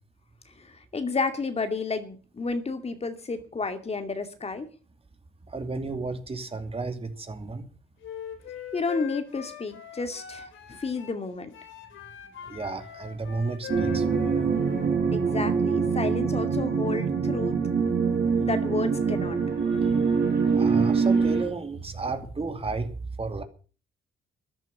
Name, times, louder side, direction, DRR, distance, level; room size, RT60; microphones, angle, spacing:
voice 1, 0.6-4.7 8.7-11.5 15.1-17.6 18.4-19.4, left 4 dB, 30° left, 2.6 m, -31 dB
voice 2, 5.5-7.6 12.4-14.6 19.8-20.0 20.5-23.4, right 3 dB, 30° right, 2.7 m, -33 dB
Wind instrument woodwind instrument, 8.0-11.2 11.5-14.9, left 10 dB, 80° left, 3.6 m, -41 dB
sound 1, 13.7-21.4, right 5 dB, 55° right, 6.4 m, -24 dB
14.0 x 11.0 x 7.4 m
cardioid pair, 90°, 20 cm